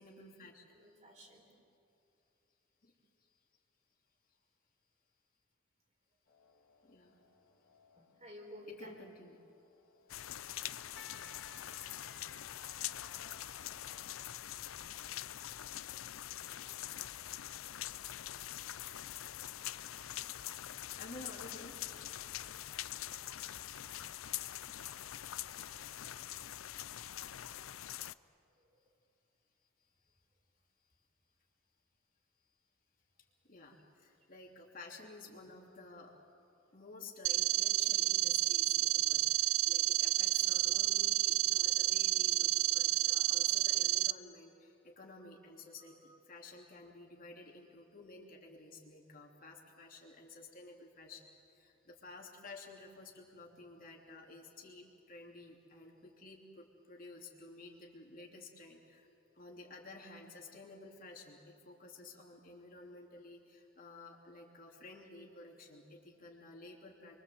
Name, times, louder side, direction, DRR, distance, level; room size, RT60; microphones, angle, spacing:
voice 1, 0.0-0.6 2.8-2.9 6.8-7.2 8.7-9.4 21.0-21.8 33.4-36.1 36.7-51.3 51.5-59.1 59.3-67.2, left 2 dB, 45° left, -1 dB, 3.0 m, -53 dB
voice 2, 0.7-1.5 7.9-8.9 17.6-17.7 22.0-22.1 23.1-23.4 46.1-46.2, equal, 35° right, 1 dB, 4.3 m, -53 dB
sound 1, 6.3-14.4, left 4 dB, 60° left, 3.0 m, -60 dB
sound 2, 10.1-28.1, left 12 dB, 85° left, 0.5 m, -44 dB
sound 3, 37.2-44.1, right 15 dB, 85° right, 0.6 m, -30 dB
28.5 x 23.5 x 7.8 m, 2.7 s
head